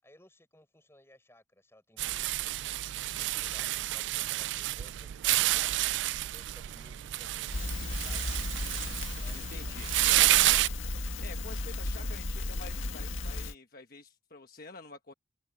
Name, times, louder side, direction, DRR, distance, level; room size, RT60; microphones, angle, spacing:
voice 1, 0.0-8.3 9.2-10.4, left 1 dB, 15° left, 7.0 m, -59 dB
sound 1, 2.0-10.7, right 16 dB, 65° right, 0.3 m, -29 dB
Crackle, 7.5-13.5, left 2 dB, 90° left, 1.8 m, -35 dB
voice 2, 9.3-9.9 11.2-15.1, left 3 dB, 50° left, 1.3 m, -48 dB
open air
head